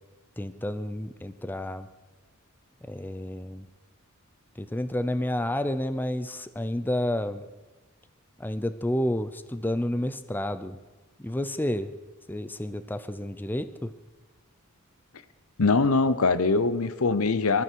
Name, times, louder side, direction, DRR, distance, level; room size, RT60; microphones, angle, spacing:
voice 1, 0.4-1.9 2.8-3.7 4.6-7.4 8.4-10.8 11.2-11.9 12.3-13.9, left 1 dB, 10° left, 0.5 m, -30 dB
voice 2, 15.6-17.6, left 3 dB, 75° left, 0.8 m, -22 dB
20.5 x 13.5 x 4.7 m
head